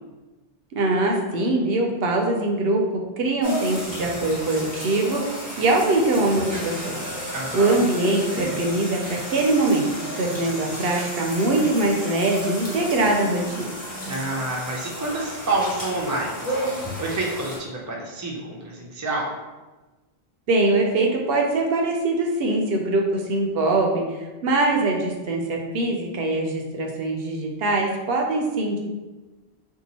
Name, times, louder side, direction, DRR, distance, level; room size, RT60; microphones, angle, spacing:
voice 1, 0.7-2.8 3.2-6.9 7.5-9.9 10.2-13.7 20.5-28.8, right 2 dB, 75° right, 1 dB, 0.8 m, -22 dB
sound 1, 3.4-17.6, equal, 10° left, 1.0 m, -33 dB
voice 2, 7.3-7.9 14.1-19.3, right 2 dB, 25° right, -2 dB, 0.4 m, -28 dB
2.8 x 2.4 x 4.0 m, 1.2 s
omnidirectional pair, 1.0 m